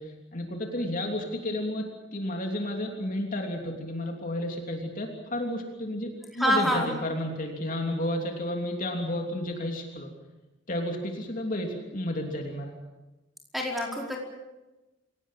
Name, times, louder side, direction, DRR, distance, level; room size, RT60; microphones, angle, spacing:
voice 1, 0.0-10.1 10.7-12.7, left 1 dB, 45° left, 2 dB, 3.1 m, -32 dB
voice 2, 6.4-6.9 13.5-14.2, equal, ahead, -1 dB, 4.7 m, -26 dB
27.5 x 18.0 x 7.6 m, 1.0 s
head